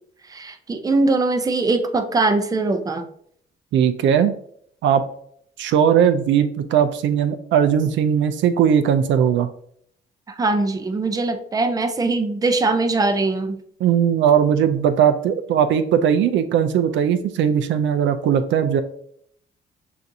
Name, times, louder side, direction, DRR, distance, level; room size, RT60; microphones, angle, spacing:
voice 1, 0.3-3.0 10.3-13.6, right 3 dB, 20° right, 7 dB, 0.5 m, -21 dB
voice 2, 3.7-4.4 4.8-5.0 5.6-9.5 13.8-18.8, right 8 dB, 70° right, 8 dB, 0.4 m, -18 dB
5.7 x 2.5 x 2.6 m, 0.65 s
cardioid pair, 90°, 20 cm